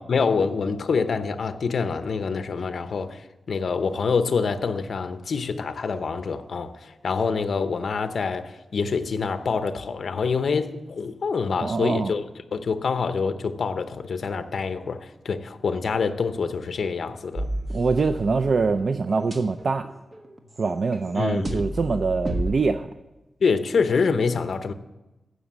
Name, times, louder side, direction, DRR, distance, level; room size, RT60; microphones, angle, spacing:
voice 1, 0.0-17.5 21.1-21.6 23.4-24.7, left 5 dB, 65° left, 0.8 m, -26 dB
voice 2, 11.6-12.1 17.7-19.9 20.6-22.9, right 4 dB, 50° right, 0.4 m, -24 dB
sound 1, 17.3-18.7 19.0-22.6, right 1 dB, 35° right, 1.4 m, -32 dB
15.0 x 6.2 x 7.3 m
wide cardioid pair, 125°, 0 cm